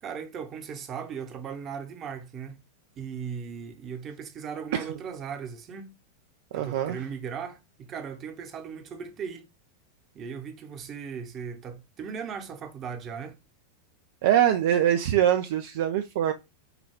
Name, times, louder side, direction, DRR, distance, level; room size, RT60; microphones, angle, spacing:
voice 1, 0.0-2.6 3.0-5.9 6.5-9.5 10.1-13.4, right 6 dB, 30° right, 0.8 m, -37 dB
voice 2, 6.5-7.0 14.2-16.3, right 11 dB, 55° right, 0.4 m, -23 dB
5.7 x 2.3 x 3.5 m
figure-of-eight pair, 90°, 0 cm